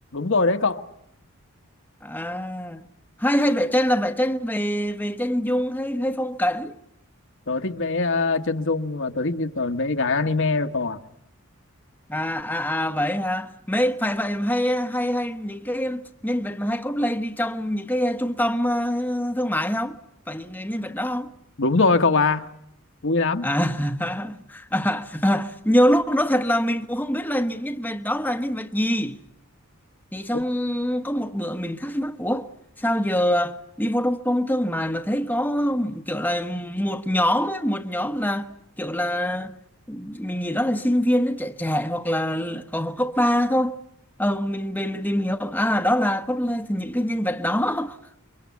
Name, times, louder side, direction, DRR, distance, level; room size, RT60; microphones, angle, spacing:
voice 1, 0.1-0.8 7.5-11.0 21.6-22.5 23.0-23.5, left 3 dB, 60° left, 1.4 m, -22 dB
voice 2, 2.0-2.8 3.2-6.7 12.1-20.0 20.3-21.3 23.4-29.2 30.1-32.5 32.8-38.5 38.8-39.5 39.9-43.8 44.2-48.0, equal, 10° left, 1.0 m, -24 dB
28.5 x 24.0 x 8.4 m
head